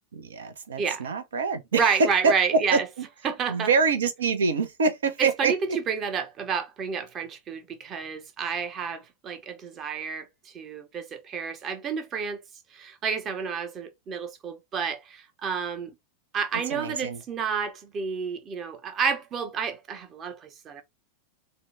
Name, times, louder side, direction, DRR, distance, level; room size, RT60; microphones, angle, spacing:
voice 1, 0.1-2.3 2.7-2.8 3.5-5.5 16.7-17.2, right 4 dB, 65° right, 0.7 m, -25 dB
voice 2, 0.8-1.1 1.7-2.9 3.2-3.7 5.2-12.4 12.7-16.0 16.3-20.8, right 6 dB, 30° right, 0.8 m, -30 dB
3.9 x 2.2 x 3.2 m
figure-of-eight pair, 90°, 0 cm